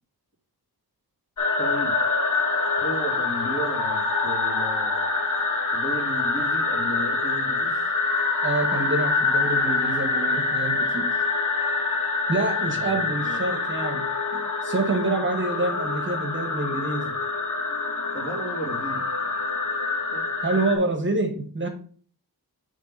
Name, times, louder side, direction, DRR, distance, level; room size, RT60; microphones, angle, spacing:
sound 1, 1.4-20.8, left 3 dB, 50° left, 1.5 m, -26 dB
voice 1, 1.6-1.9 2.7-5.1 5.7-7.7 12.7-13.4 17.0-17.1 18.1-19.0 20.1-20.3, right 1 dB, 30° left, 2.3 m, -34 dB
voice 2, 8.4-11.1 12.3-14.1 14.3-17.1 20.4-21.7, right 2 dB, 30° right, 1.1 m, -27 dB
6.4 x 3.4 x 5.3 m
wide cardioid pair, 170°, 38 cm